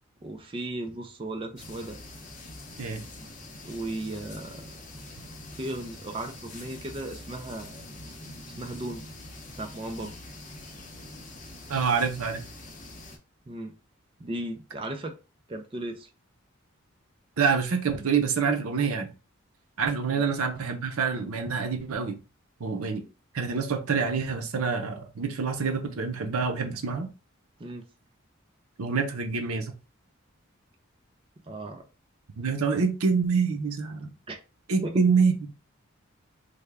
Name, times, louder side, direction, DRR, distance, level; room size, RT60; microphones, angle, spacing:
voice 1, 0.2-2.0 3.6-4.8 5.5-7.8 8.6-9.0 9.6-10.2 13.5-13.7 14.2-15.2 15.5-16.1 20.1-20.2 27.6-27.8 31.5-31.8 34.3-34.4 34.8-35.0, right 1 dB, 25° right, 0.3 m, -36 dB
sound 1, 1.6-13.2, left 1 dB, 35° left, 0.7 m, -44 dB
voice 2, 11.7-12.4 17.4-19.1 19.8-22.2 22.6-23.0 23.3-27.1 28.8-29.7 32.4-34.1 34.7-35.5, right 5 dB, 90° right, 0.6 m, -26 dB
3.4 x 2.2 x 3.4 m
head